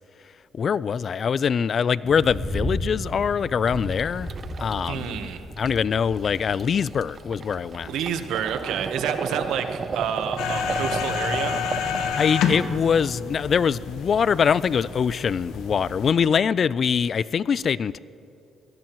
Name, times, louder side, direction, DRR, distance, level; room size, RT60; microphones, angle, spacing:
voice 1, 0.5-4.3 4.6-5.3 5.6-7.9 12.2-18.0, left 7 dB, 50° left, 19 dB, 0.3 m, -23 dB
sound 1, 2.0-15.7, equal, 5° left, 2.8 m, -38 dB
sound 2, 3.7-12.2, right 5 dB, 45° right, 0.6 m, -34 dB
voice 2, 4.9-5.5 7.8-11.6, right 8 dB, 85° right, 8 dB, 1.1 m, -29 dB
sound 3, 10.4-16.1, left 6 dB, 90° left, 1.2 m, -29 dB
23.0 x 18.5 x 3.1 m, 2.9 s
cardioid pair, 90°, 0 cm